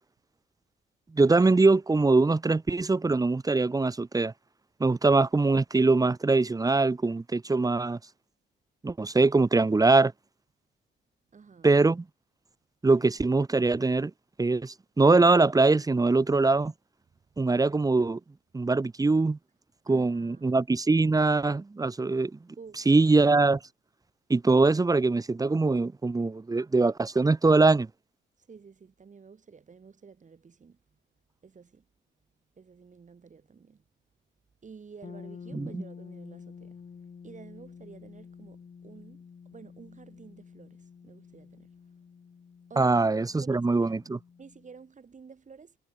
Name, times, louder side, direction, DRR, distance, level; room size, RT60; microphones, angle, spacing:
voice 1, 1.1-4.3 4.8-8.0 8.8-10.1 11.6-12.0 12.8-14.1 14.4-16.7 17.4-18.2 18.5-19.4 19.9-22.4 22.9-23.6 24.3-27.9 35.5-35.8 42.8-44.2, right 3 dB, 20° right, 1.0 m, -23 dB
voice 2, 11.3-11.7 17.1-17.2 19.9-20.6 22.6-22.9 28.4-30.8 31.4-31.8 32.6-33.8 34.6-36.8 37.2-41.7 42.7-42.9 43.4-44.0 44.4-45.8, right 5 dB, 40° right, 6.2 m, -51 dB
sound 1, 35.0-44.8, left 6 dB, 40° left, 5.2 m, -49 dB
cardioid pair, 90°, 20 cm